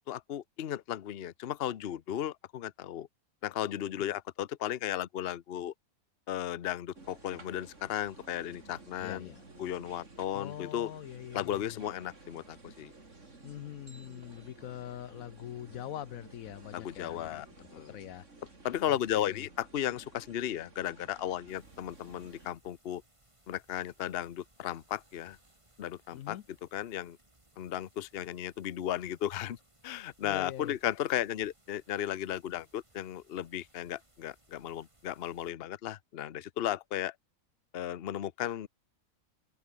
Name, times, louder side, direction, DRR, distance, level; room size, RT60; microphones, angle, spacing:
voice 1, 0.1-3.1 3.4-5.7 6.3-9.3 9.6-10.9 11.3-12.9 16.7-17.5 17.7-18.0 18.6-23.0 23.5-25.4 25.8-27.2 27.6-29.6 29.8-37.1 37.7-38.7, left 11 dB, 50° left, 0.9 m, -35 dB
sound 1, 6.9-22.5, right 3 dB, 60° right, 3.9 m, -54 dB
voice 2, 9.0-9.4 10.3-11.8 13.4-18.2 18.9-19.4 26.1-26.4 30.2-30.8, left 12 dB, 80° left, 1.1 m, -43 dB
sound 2, 21.5-35.5, right 1 dB, 20° right, 3.4 m, -66 dB
omnidirectional pair, 1.5 m